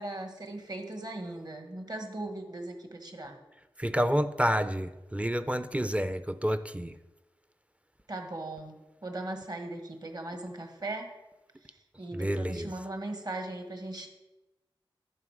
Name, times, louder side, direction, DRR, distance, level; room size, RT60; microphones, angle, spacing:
voice 1, 0.0-3.4 8.1-8.8 9.0-11.1 11.6-14.1, right 2 dB, 45° right, 5 dB, 1.5 m, -38 dB
voice 2, 3.8-7.0 12.1-12.7, equal, 15° right, 13 dB, 0.4 m, -29 dB
11.0 x 5.7 x 4.9 m, 1.0 s
wide cardioid pair, 55°, 9 cm